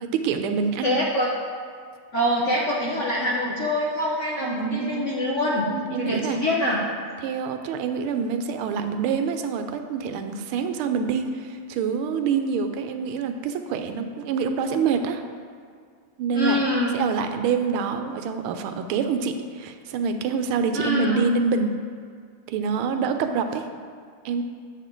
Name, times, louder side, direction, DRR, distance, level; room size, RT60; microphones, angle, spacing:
voice 1, 0.0-1.0 4.4-5.0 5.7-6.4 7.2-15.2 16.2-16.6 16.9-21.8 22.5-23.7 24.2-24.4, right 5 dB, 90° right, 7 dB, 1.5 m, -26 dB
voice 2, 0.8-1.3 2.1-5.7 6.0-6.8 16.3-17.0 20.7-21.2, left 1 dB, 55° left, -4 dB, 0.8 m, -24 dB
7.9 x 6.5 x 3.8 m, 2.1 s
omnidirectional pair, 2.3 m